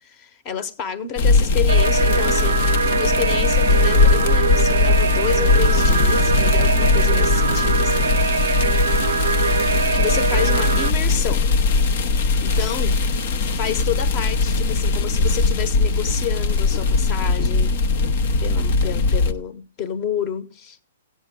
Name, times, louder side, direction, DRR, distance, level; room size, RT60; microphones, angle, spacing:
voice 1, 0.0-8.2 9.9-11.5 12.4-13.0 13.6-17.7 18.4-20.8, left 8 dB, 35° left, 1.1 m, -29 dB
sound 1, 1.2-19.3, left 3 dB, 55° left, 0.8 m, -19 dB
sound 2, 1.7-10.9, right 5 dB, 80° right, 0.4 m, -23 dB
15.0 x 8.7 x 3.7 m
hypercardioid pair, 130°, 0 cm